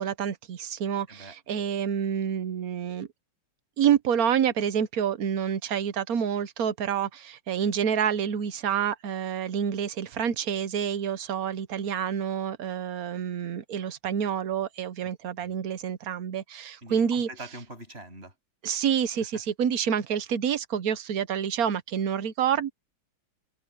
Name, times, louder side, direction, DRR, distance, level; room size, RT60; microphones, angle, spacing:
voice 1, 0.0-3.1 3.8-17.3 18.6-22.7, right 8 dB, 55° right, 1.1 m, -28 dB
voice 2, 16.8-18.3, right 2 dB, 25° right, 7.9 m, -43 dB
omnidirectional pair, 2.3 m